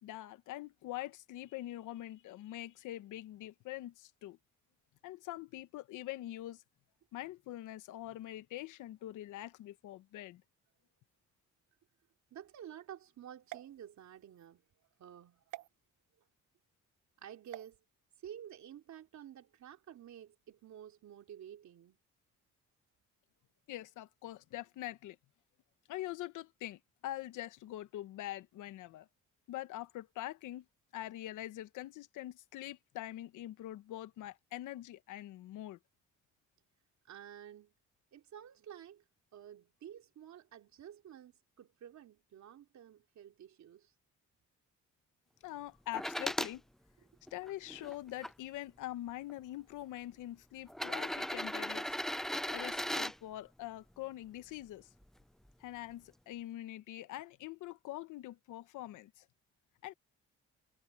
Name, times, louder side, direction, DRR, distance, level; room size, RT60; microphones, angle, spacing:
voice 1, 0.0-4.4 5.0-6.6 7.1-10.4 23.7-25.2 25.9-29.1 29.5-30.6 30.9-35.8 45.4-46.6 47.3-52.0 52.5-54.9 55.6-59.2 59.8-59.9, left 15 dB, 90° left, 1.2 m, -44 dB
voice 2, 12.3-14.6 15.0-15.4 17.2-17.8 18.2-22.0 37.0-37.7 38.1-39.0 39.3-43.9, right 10 dB, 65° right, 3.4 m, -51 dB
sound 1, 13.4-14.5 15.5-15.7 17.4-17.7, right 15 dB, 85° right, 1.3 m, -49 dB
sound 2, 45.9-46.5 47.3-48.3 49.3-49.4 50.7-53.1 55.0-55.1, equal, ahead, 0.4 m, -37 dB
cardioid pair, 90°, 30 cm